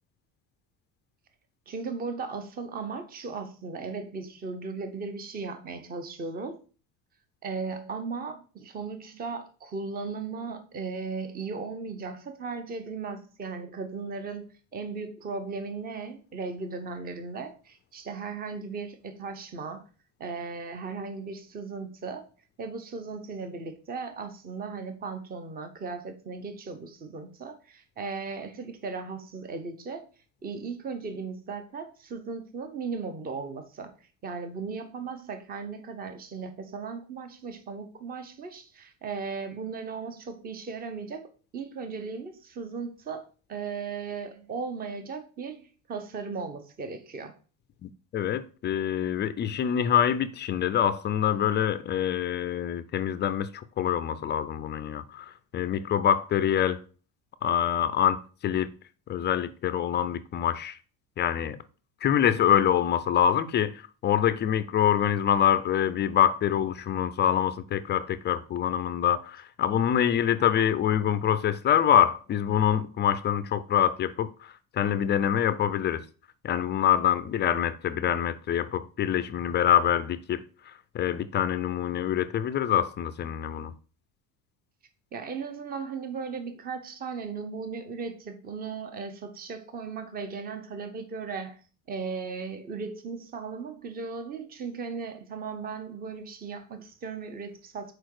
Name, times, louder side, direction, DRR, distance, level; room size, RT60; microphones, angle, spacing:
voice 1, 1.7-6.6 7.4-14.5 14.7-19.8 20.2-22.2 22.6-30.1 30.4-33.9 34.2-43.2 43.5-47.3 85.1-91.6 91.9-97.9, right 4 dB, 25° right, 0.9 m, -37 dB
voice 2, 47.8-56.8 57.4-58.7 59.1-60.8 61.2-61.6 62.0-76.0 76.4-83.7, left 9 dB, 30° left, 0.4 m, -25 dB
6.2 x 4.7 x 4.7 m
cardioid pair, 150°, 39 cm